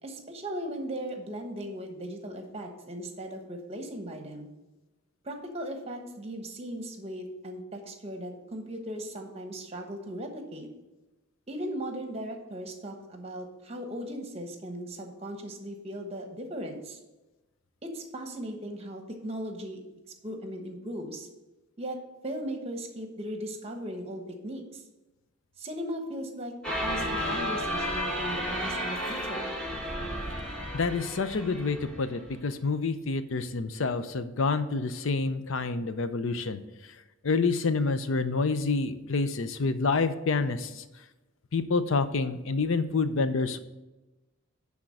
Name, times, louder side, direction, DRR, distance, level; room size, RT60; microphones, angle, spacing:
voice 1, 0.0-4.5 5.2-10.7 11.5-17.0 17.8-19.8 20.2-21.3 21.8-22.0 22.2-24.8 25.6-26.5 26.8-29.5, equal, 30° right, 4 dB, 1.1 m, -38 dB
sound 1, 26.6-32.4, equal, 5° left, 1.3 m, -32 dB
voice 2, 30.7-36.6 37.2-40.8 41.5-43.6, left 4 dB, 70° left, 11 dB, 0.6 m, -28 dB
10.0 x 3.6 x 6.5 m, 1.1 s
head